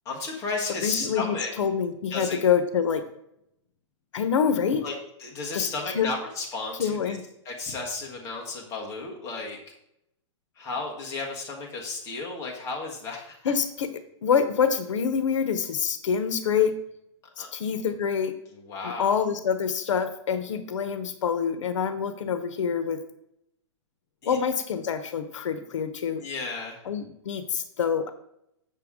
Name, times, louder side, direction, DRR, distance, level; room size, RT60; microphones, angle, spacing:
voice 1, 0.0-1.5 2.1-2.4 4.8-4.9 5.2-7.2 7.4-9.6 10.6-13.5 17.4-17.5 18.7-19.2 24.2-24.4 26.2-26.8, left 3 dB, 20° left, -1 dB, 1.4 m, -33 dB
voice 2, 0.8-3.0 4.1-4.8 5.5-5.7 5.9-6.1 6.8-7.3 13.4-13.9 14.2-16.7 17.4-18.3 18.8-23.0 24.2-26.2 26.8-28.1, left 7 dB, 80° left, 10 dB, 0.9 m, -26 dB
7.0 x 6.7 x 3.6 m, 0.78 s
hypercardioid pair, 170°, 16 cm